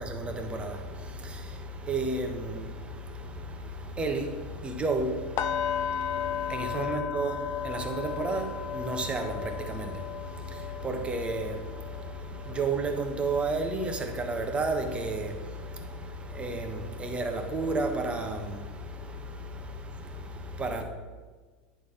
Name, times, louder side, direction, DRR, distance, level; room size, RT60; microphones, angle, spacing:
voice 1, 0.0-20.8, right 2 dB, 20° right, 1.3 m, -32 dB
sound 1, 5.4-15.3 15.6-15.9 16.3-16.5, left 9 dB, 50° left, 0.5 m, -36 dB
9.6 x 3.9 x 6.5 m
hypercardioid pair, 85°, 5 cm